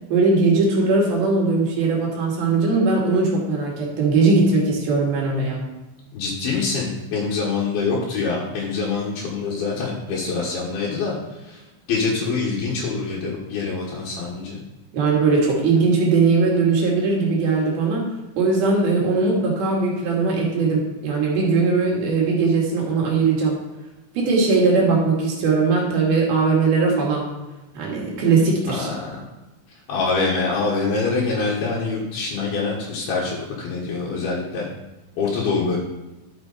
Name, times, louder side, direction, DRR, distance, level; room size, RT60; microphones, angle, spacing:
voice 1, 0.1-5.6 14.9-18.1 18.4-23.6 24.1-27.3 27.8-28.9, right 4 dB, 70° right, -2 dB, 3.8 m, -19 dB
voice 2, 6.1-11.2 11.4-11.6 11.9-14.6 28.7-29.1 29.9-34.7 35.2-35.8, left 4 dB, 75° left, -6 dB, 3.4 m, -25 dB
12.0 x 6.3 x 4.2 m, 1.0 s
omnidirectional pair, 4.5 m